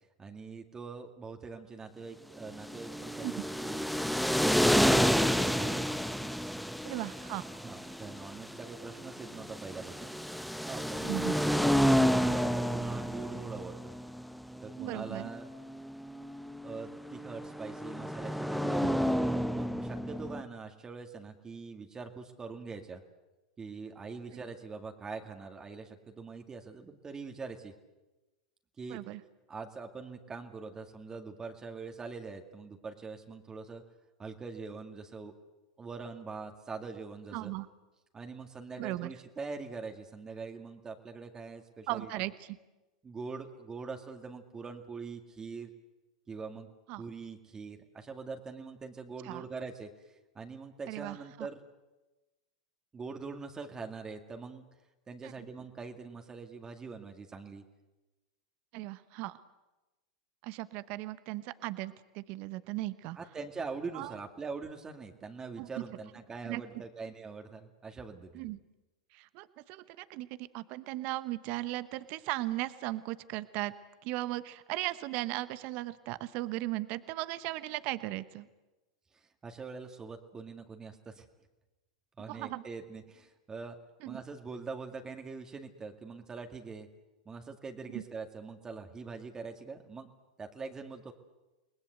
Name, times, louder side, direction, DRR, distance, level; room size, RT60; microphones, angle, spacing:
voice 1, 0.2-3.9 4.7-5.9 7.6-10.1 10.7-13.9 14.6-15.5 16.6-23.0 23.6-27.7 28.8-29.0 29.5-33.8 34.2-35.3 35.8-37.5 38.1-42.1 43.0-45.7 46.3-46.7 47.0-51.6 52.9-54.6 55.1-57.6 63.2-68.5 79.1-81.3 82.2-83.8 84.1-86.9 87.3-90.1 90.4-91.1, right 4 dB, 20° right, 4 dB, 2.1 m, -43 dB
sound 1, 2.5-20.4, equal, ahead, 1.0 m, -30 dB
voice 2, 6.8-7.5 11.0-11.3 14.8-15.3 28.9-29.2 37.3-37.7 38.8-39.1 41.9-42.6 46.9-47.0 49.2-49.4 50.9-51.5 55.2-55.3 58.7-59.4 60.4-63.2 63.9-64.1 65.6-65.8 66.4-66.6 68.3-68.6 69.1-73.7 74.0-78.5 82.3-82.6 84.0-84.2 87.9-88.0, right 18 dB, 50° right, 14 dB, 1.0 m, -37 dB
29.5 x 20.5 x 8.0 m, 1.1 s
hypercardioid pair, 95°, 3 cm